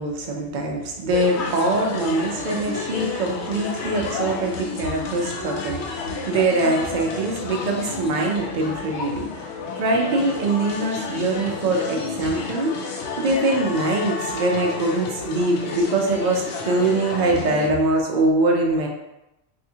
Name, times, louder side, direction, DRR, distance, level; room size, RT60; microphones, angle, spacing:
voice 1, 0.0-9.5 9.8-18.9, right 2 dB, 75° right, 0 dB, 0.4 m, -23 dB
sound 1, 1.1-17.7, left 4 dB, 70° left, 0.8 m, -31 dB
3.4 x 2.7 x 2.7 m, 0.94 s
omnidirectional pair, 1.3 m